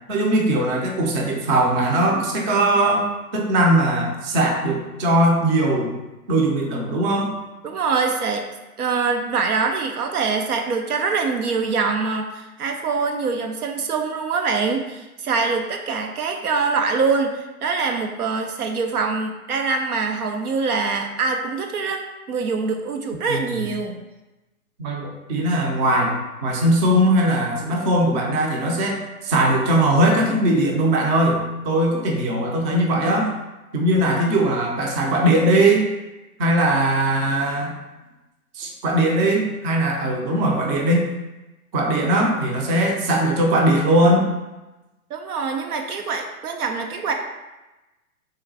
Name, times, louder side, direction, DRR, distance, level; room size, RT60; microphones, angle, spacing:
voice 1, 0.1-5.9 6.3-7.4 23.3-23.7 24.8-26.1 26.4-31.4 31.6-33.3 33.7-35.8 36.4-37.8 38.5-41.1 41.7-44.2, right 1 dB, 30° right, 0 dB, 0.6 m, -20 dB
voice 2, 7.6-8.4 8.8-24.0 45.1-47.1, right 4 dB, 80° right, 4 dB, 0.6 m, -24 dB
3.8 x 2.1 x 4.0 m, 1.0 s
hypercardioid pair, 120°, 44 cm